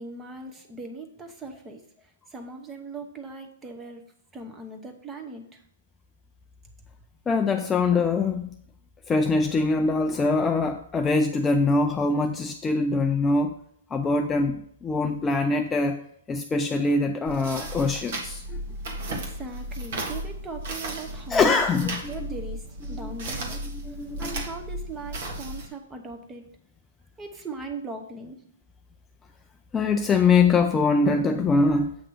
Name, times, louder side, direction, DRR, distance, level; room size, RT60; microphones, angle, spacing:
voice 1, 0.0-1.8 2.3-4.0 4.3-5.6 19.1-23.6 24.2-26.4 27.2-28.4, right 3 dB, 15° right, 4 dB, 0.9 m, -39 dB
voice 2, 7.3-8.5 9.1-13.5 13.9-16.0 16.3-18.6 21.3-22.0 23.9-24.3 29.7-31.9, left 3 dB, 15° left, 5 dB, 0.3 m, -23 dB
sound 1, 17.3-25.7, right 1 dB, 60° right, 1.6 m, -35 dB
7.8 x 3.0 x 6.2 m, 0.66 s
hypercardioid pair, 145°, 0 cm